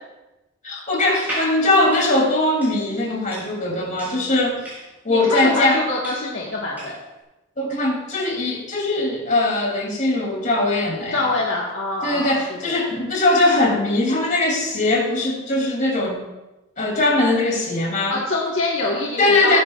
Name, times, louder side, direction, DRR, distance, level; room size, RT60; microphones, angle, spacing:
voice 1, 0.6-4.6 5.0-5.8 7.6-11.3 12.0-16.2 16.8-18.2 18.8-18.9 19.2-19.6, left 2 dB, 35° left, -1 dB, 2.9 m, -20 dB
sound 1, 1.1-7.1, right 1 dB, 10° right, 4.5 m, -35 dB
voice 2, 5.1-7.0 11.1-12.9 18.1-19.6, left 2 dB, 60° left, -4 dB, 1.6 m, -25 dB
18.0 x 9.4 x 2.4 m, 1.0 s
head